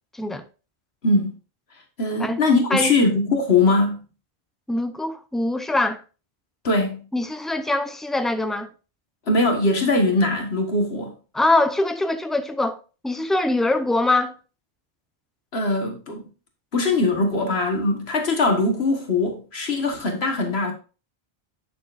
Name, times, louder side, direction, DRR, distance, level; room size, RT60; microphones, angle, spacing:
voice 1, 0.1-0.4 2.2-2.4 2.7-2.9 4.7-6.0 7.1-8.7 11.3-12.8 13.0-14.3, left 2 dB, ahead, 0.4 m, -23 dB
voice 2, 1.0-1.3 2.0-4.0 6.6-7.0 9.3-11.1 15.5-16.2 16.7-20.7, left 2 dB, 85° left, 1.8 m, -21 dB
9.1 x 6.6 x 2.5 m
omnidirectional pair, 1.0 m